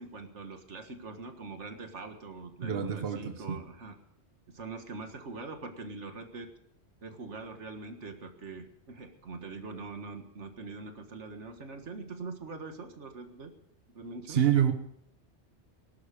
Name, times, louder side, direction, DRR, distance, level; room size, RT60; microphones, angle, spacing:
voice 1, 0.0-4.0 4.5-6.5 7.0-13.5 13.9-14.4, right 3 dB, 85° right, 6 dB, 1.9 m, -43 dB
voice 2, 2.6-3.6 14.3-14.7, right 9 dB, 60° right, 7 dB, 1.3 m, -27 dB
19.0 x 11.5 x 5.2 m, 0.71 s
omnidirectional pair, 1.2 m